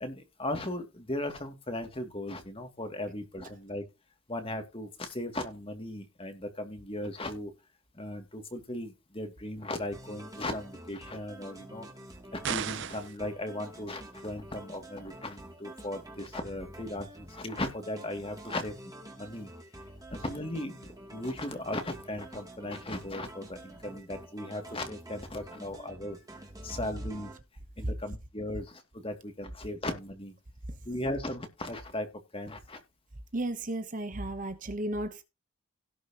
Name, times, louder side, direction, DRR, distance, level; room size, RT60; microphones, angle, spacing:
voice 1, 0.0-3.8 4.3-7.5 7.9-11.9 12.3-19.5 20.1-26.2 26.6-27.3 27.8-30.3 30.9-32.1 32.3-32.8, left 1 dB, 25° left, 2.5 m, -37 dB
sound 1, 9.9-27.4, right 1 dB, 15° right, 2.7 m, -48 dB
sound 2, 12.4-13.2, right 8 dB, 55° right, 0.6 m, -34 dB
voice 2, 33.3-35.2, right 1 dB, 35° right, 1.0 m, -34 dB
18.0 x 6.2 x 3.0 m
head